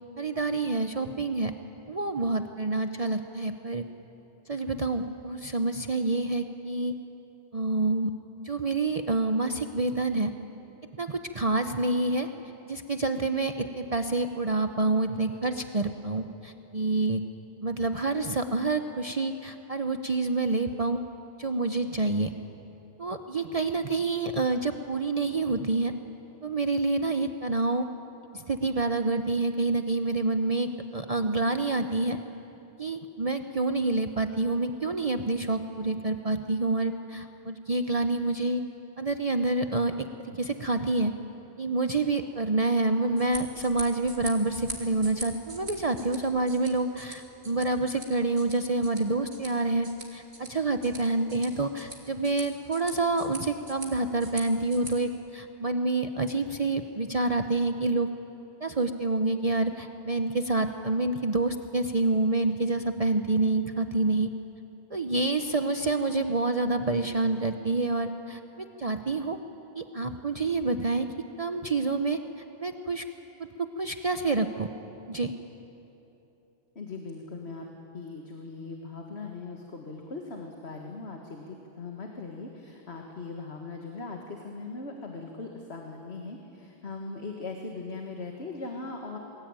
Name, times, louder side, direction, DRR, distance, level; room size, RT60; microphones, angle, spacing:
voice 1, 0.2-1.5 1.9-3.8 4.5-6.9 7.5-8.1 8.4-10.3 11.0-12.3 12.7-17.2 17.6-21.0 21.4-22.3 23.0-25.9 26.4-27.9 28.3-32.2 32.8-38.6 39.0-39.9 40.3-41.1 41.6-58.1 58.6-64.3 64.9-68.4 68.8-69.4 69.7-71.1 71.4-72.2 72.6-73.0 73.8-74.7 75.1-75.3, right 2 dB, 40° right, 7 dB, 0.9 m, -27 dB
sound 1, 43.0-54.9, right 2 dB, 75° right, 3.2 m, -44 dB
voice 2, 76.8-77.7 77.9-89.2, left 3 dB, 80° left, 2 dB, 2.1 m, -39 dB
27.5 x 21.0 x 9.0 m, 2.9 s
omnidirectional pair, 1.1 m